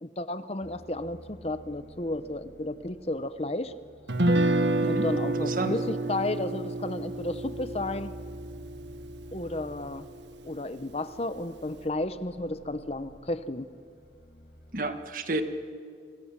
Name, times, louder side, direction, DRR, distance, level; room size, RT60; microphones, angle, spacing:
voice 1, 0.0-3.7 4.9-8.1 9.3-10.1 10.4-13.7, left 2 dB, 35° left, 12 dB, 0.9 m, -33 dB
sound 1, 0.6-14.8, equal, 75° left, 6.3 m, -51 dB
Guitar, 4.1-10.2, right 2 dB, 80° right, 1.4 m, -29 dB
voice 2, 4.8-5.7 14.7-15.4, right 2 dB, 50° right, 8 dB, 1.8 m, -32 dB
30.0 x 25.5 x 7.5 m, 2.2 s
head